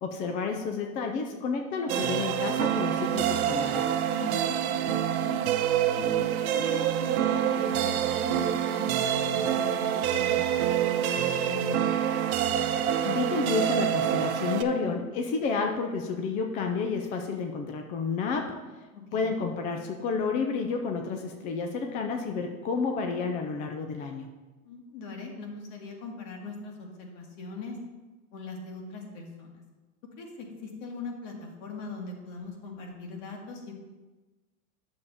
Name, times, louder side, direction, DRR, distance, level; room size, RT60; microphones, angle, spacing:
voice 1, 0.0-3.8 13.0-18.5 19.1-24.3, left 5 dB, 20° left, 3 dB, 0.4 m, -30 dB
sound 1, 1.9-14.6, right 10 dB, 70° right, 0.9 m, -26 dB
voice 2, 4.1-5.4 6.0-11.9 18.9-19.3 24.6-27.8 28.3-29.6 30.2-33.7, left 4 dB, 55° left, 1 dB, 2.1 m, -40 dB
9.5 x 7.0 x 3.4 m, 1.2 s
hypercardioid pair, 130°, 45 cm